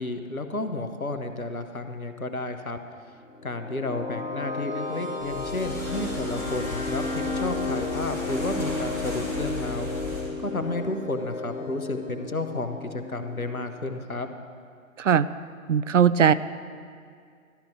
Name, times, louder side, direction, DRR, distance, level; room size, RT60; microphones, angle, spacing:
voice 1, 0.0-2.8 3.4-14.3, left 2 dB, 90° left, 7 dB, 1.2 m, -32 dB
sound 1, 3.2-14.1, left 2 dB, 20° left, 2.3 m, -33 dB
sound 2, 5.2-10.2, left 2 dB, 5° left, 3.7 m, -36 dB
voice 2, 15.7-16.3, right 8 dB, 65° right, 15 dB, 0.5 m, -19 dB
13.0 x 12.0 x 4.8 m, 2.2 s
figure-of-eight pair, 135°, 41 cm